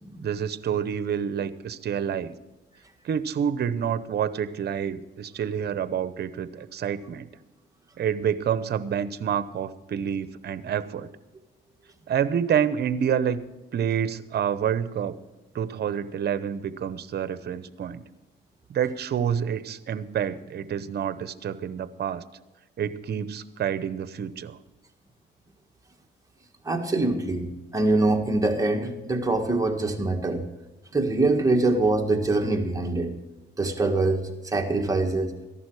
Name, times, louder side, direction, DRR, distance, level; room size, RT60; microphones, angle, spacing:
voice 1, 0.2-2.3 3.0-7.3 8.0-11.1 12.1-13.4 13.7-15.2 15.5-18.0 18.7-22.2 22.8-24.6, right 8 dB, 55° right, 13 dB, 0.9 m, -28 dB
voice 2, 26.6-27.5 27.7-30.4 30.9-33.1 33.6-35.3, right 2 dB, 15° right, 3 dB, 1.7 m, -24 dB
14.5 x 11.0 x 4.8 m, 1.1 s
cardioid pair, 90°, 20 cm